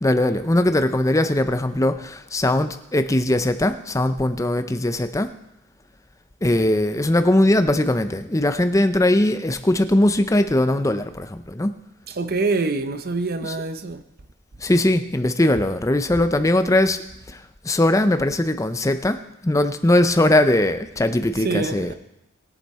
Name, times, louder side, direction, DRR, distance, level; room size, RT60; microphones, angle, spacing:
voice 1, 0.0-5.3 6.4-11.7 13.4-13.6 14.6-17.0 17.3-21.9, left 1 dB, 15° left, 0.5 m, -20 dB
voice 2, 12.1-14.0 21.4-21.9, right 3 dB, 45° right, 0.7 m, -25 dB
21.0 x 7.0 x 4.3 m
head